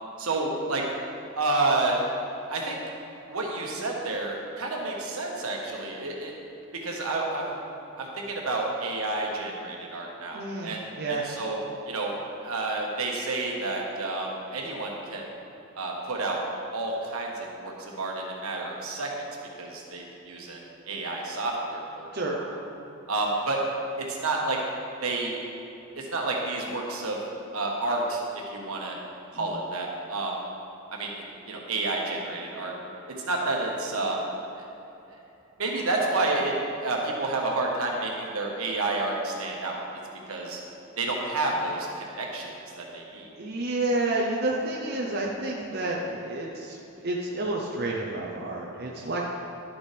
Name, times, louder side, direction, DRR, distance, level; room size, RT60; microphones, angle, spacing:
voice 1, 0.2-0.9 1.3-2.0 2.5-2.8 3.3-6.3 6.7-7.6 8.0-11.6 11.9-12.1 12.4-15.2 15.7-16.4 16.7-19.1 19.6-20.6 20.9-22.6 23.1-23.6 24.0-24.6 25.0-25.4 26.0-27.2 27.5-29.0 29.3-30.4 30.9-32.7 33.1-34.2 34.5-34.6 35.6-36.5 36.8-39.8 40.3-40.6 41.0-42.5 42.8-43.3, right 2 dB, 80° right, -1 dB, 1.4 m, -30 dB
voice 2, 10.3-11.3 22.1-22.4 29.3-29.5 43.3-49.3, right 2 dB, 45° right, -3 dB, 0.8 m, -30 dB
11.0 x 7.1 x 3.4 m, 3.0 s
head